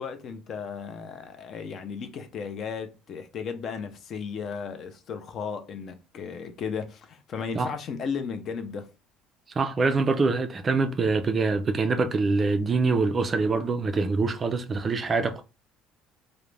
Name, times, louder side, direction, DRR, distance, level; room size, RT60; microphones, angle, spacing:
voice 1, 0.0-8.9, left 6 dB, 45° left, 0.5 m, -35 dB
voice 2, 9.6-15.4, right 4 dB, 25° right, 0.3 m, -24 dB
2.4 x 2.1 x 3.1 m
cardioid pair, 125°, 0 cm